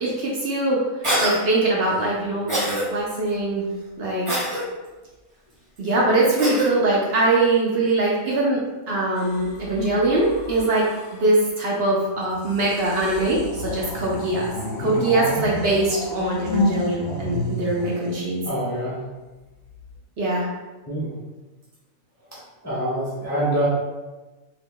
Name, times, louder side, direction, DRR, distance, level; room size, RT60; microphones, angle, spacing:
voice 1, 0.0-3.7 4.0-4.3 5.8-14.5 14.8-18.4 20.2-20.5, right 2 dB, 55° right, -4 dB, 0.8 m, -22 dB
Cough, 1.0-1.4 2.5-2.8 4.3-4.6 6.4-6.7, right 1 dB, 25° right, 0.9 m, -23 dB
sound 1, 9.2-11.3 12.3-18.8 19.7-20.0, left 1 dB, 75° left, 1.0 m, -31 dB
voice 2, 18.4-19.0 20.9-21.1 22.3-23.7, right 1 dB, 20° left, -8 dB, 0.4 m, -26 dB
2.8 x 2.4 x 3.6 m, 1.2 s
omnidirectional pair, 1.4 m